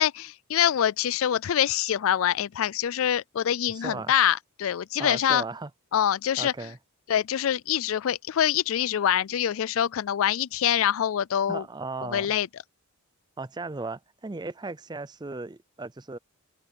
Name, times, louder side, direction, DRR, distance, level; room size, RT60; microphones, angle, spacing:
voice 1, 0.0-5.4 5.9-6.5 7.1-11.6 12.1-12.5, left 10 dB, 65° left, 0.4 m, -25 dB
voice 2, 3.7-4.1 5.0-5.7 6.4-6.8 11.5-12.4 13.4-16.2, right 3 dB, 20° right, 0.5 m, -36 dB
head